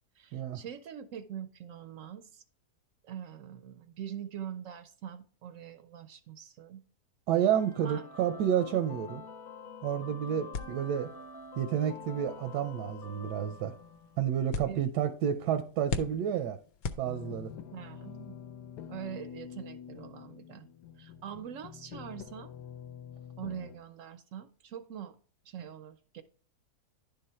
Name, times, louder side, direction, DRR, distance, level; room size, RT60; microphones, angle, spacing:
voice 1, 0.2-2.4 3.0-6.8 7.8-8.0 14.7-14.8 17.7-18.4 18.9-20.7 21.0-22.5 23.4-25.2 25.4-26.2, right 9 dB, 70° right, 0.8 m, -43 dB
voice 2, 7.3-9.2 9.8-11.1 11.6-13.8 14.2-16.6 17.0-17.5, right 9 dB, 85° right, 1.2 m, -30 dB
sound 1, 7.4-14.4, left 3 dB, 45° left, 0.8 m, -47 dB
sound 2, 10.5-17.6, left 5 dB, 70° left, 1.0 m, -42 dB
sound 3, 17.0-23.8, left 8 dB, 90° left, 1.2 m, -46 dB
10.5 x 3.9 x 4.2 m
omnidirectional pair, 1.7 m